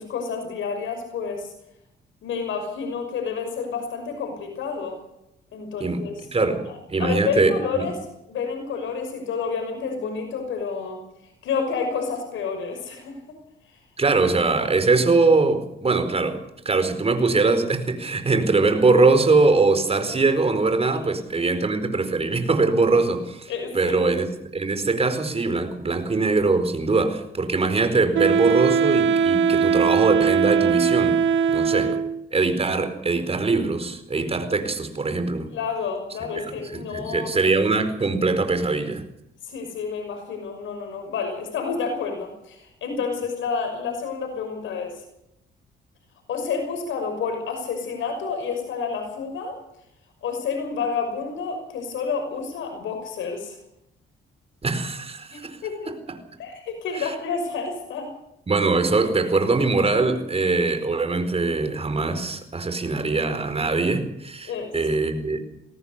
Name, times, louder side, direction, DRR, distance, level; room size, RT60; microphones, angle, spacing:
voice 1, 0.0-1.5 2.2-5.0 5.5-6.6 7.0-8.0 8.3-11.0 11.4-13.4 20.9-21.0 21.3-21.5 23.5-24.1 31.9-32.0 35.5-37.3 39.4-45.0 46.3-49.6 50.2-53.6 55.3-55.9 56.4-58.1 64.5-65.1, left 5 dB, 75° left, 5 dB, 6.0 m, -29 dB
voice 2, 6.3-6.6 6.9-7.8 14.0-16.4 16.6-24.3 24.5-31.2 31.5-32.0 32.3-35.5 36.3-39.0 54.6-55.6 55.9-56.0 56.9-57.1 58.5-65.4, right 3 dB, 30° right, 9 dB, 4.4 m, -22 dB
Wind instrument woodwind instrument, 28.1-32.3, right 6 dB, 70° right, 1.0 m, -20 dB
21.5 x 18.0 x 6.8 m, 0.81 s
cardioid pair, 90°, 20 cm